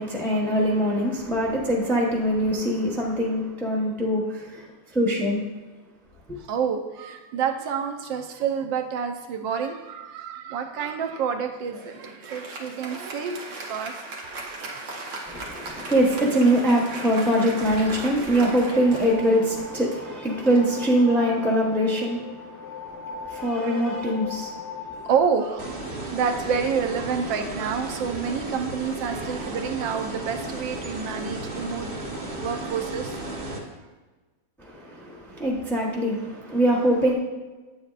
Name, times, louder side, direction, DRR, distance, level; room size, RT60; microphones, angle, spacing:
voice 1, 0.0-4.6 4.9-5.4 15.3-25.1 34.6-37.1, equal, 5° left, -3 dB, 0.3 m, -23 dB
voice 2, 6.5-14.0 14.3-14.9 24.9-25.8 26.1-31.9 32.4-33.8, right 6 dB, 80° right, 6 dB, 1.5 m, -28 dB
Applause, 11.7-21.5, right 2 dB, 65° right, 1.6 m, -38 dB
sound 1, 14.8-26.4, left 5 dB, 75° left, 1.1 m, -40 dB
sound 2, 25.6-33.6, right 2 dB, 30° right, 1.1 m, -34 dB
8.5 x 7.8 x 2.4 m, 1.3 s
omnidirectional pair, 2.0 m